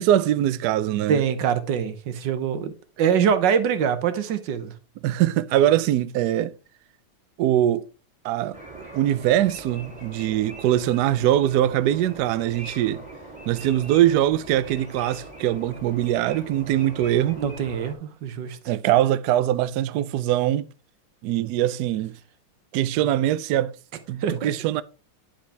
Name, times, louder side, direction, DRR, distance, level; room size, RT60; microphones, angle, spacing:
voice 1, 0.0-1.2 5.0-6.5 7.4-7.9 8.2-13.0 13.5-17.4 18.7-20.7 21.2-22.2 22.7-23.7 24.1-24.8, right 12 dB, 80° right, 0.9 m, -22 dB
voice 2, 1.1-4.7 17.4-18.6 24.2-24.5, right 7 dB, 65° right, 1.4 m, -24 dB
sound 1, 8.5-17.9, right 2 dB, 5° right, 2.0 m, -42 dB
10.0 x 5.1 x 3.4 m
omnidirectional pair, 2.3 m